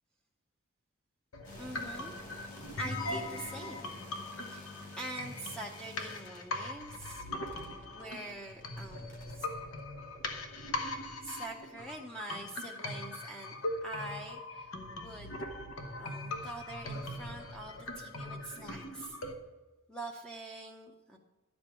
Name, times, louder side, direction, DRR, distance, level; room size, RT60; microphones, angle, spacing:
sound 1, 1.3-19.3, left 2 dB, 75° left, 1.0 m, -40 dB
sound 2, 1.4-9.5, left 2 dB, 35° left, 2.1 m, -51 dB
voice 1, 1.6-2.1 2.8-3.9 4.4-4.7 5.0-7.3 7.5-9.5 11.2-14.7 15.0-15.4 16.0-19.2 19.9-21.2, right 2 dB, 5° left, 0 dB, 0.6 m, -45 dB
12.0 x 5.3 x 5.9 m, 1.1 s
head